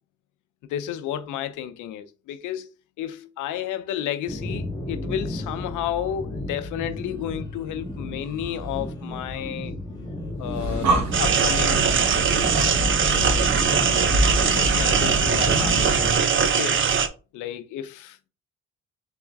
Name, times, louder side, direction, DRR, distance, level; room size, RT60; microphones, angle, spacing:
voice 1, 0.7-2.7 3.0-9.7 10.4-11.8 14.6-16.1 16.4-16.9 17.3-18.3, left 10 dB, 85° left, 0.6 m, -32 dB
sound 1, 4.3-16.2, left 1 dB, 10° left, 1.6 m, -33 dB
Breathing, 10.4-16.2, right 1 dB, 65° right, 1.0 m, -27 dB
sound 2, 11.1-17.1, right 6 dB, 40° right, 0.7 m, -21 dB
3.9 x 3.7 x 3.5 m
cardioid pair, 90°, 30 cm